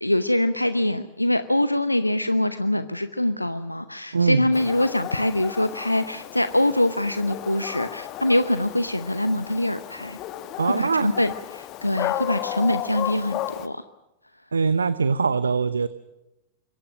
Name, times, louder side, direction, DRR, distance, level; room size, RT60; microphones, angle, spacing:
voice 1, 0.0-10.2 10.7-13.8, left 1 dB, 85° left, 12 dB, 0.8 m, -24 dB
voice 2, 4.1-4.5 10.6-11.1 14.5-15.9, right 5 dB, 75° right, 15 dB, 0.8 m, -22 dB
Dog, 4.5-13.7, left 13 dB, 40° left, 1.4 m, -34 dB
26.5 x 22.5 x 6.4 m, 0.90 s
figure-of-eight pair, 90°, 0 cm